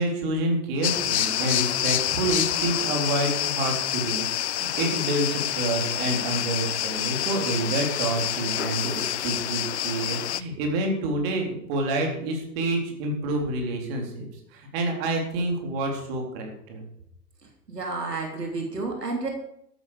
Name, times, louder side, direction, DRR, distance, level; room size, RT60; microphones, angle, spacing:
voice 1, 0.0-14.3 14.5-16.8, right 2 dB, 35° right, 1 dB, 4.0 m, -28 dB
sound 1, 0.8-10.4, left 12 dB, 45° left, 0.6 m, -27 dB
voice 2, 17.7-19.3, right 3 dB, 75° right, 1 dB, 3.3 m, -30 dB
13.5 x 12.0 x 5.1 m, 0.74 s
figure-of-eight pair, 110°, 48 cm